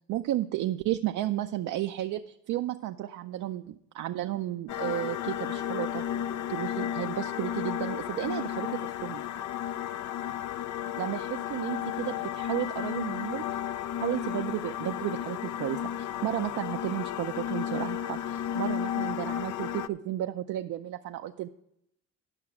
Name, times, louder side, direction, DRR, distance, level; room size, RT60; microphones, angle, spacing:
voice 1, 0.1-6.0 6.5-9.2 11.0-13.4 14.0-21.5, right 14 dB, 75° right, 6 dB, 0.5 m, -33 dB
sound 1, 4.7-19.9, left 10 dB, 75° left, 0.5 m, -33 dB
11.5 x 5.8 x 5.9 m, 0.79 s
cardioid pair, 90°, 30 cm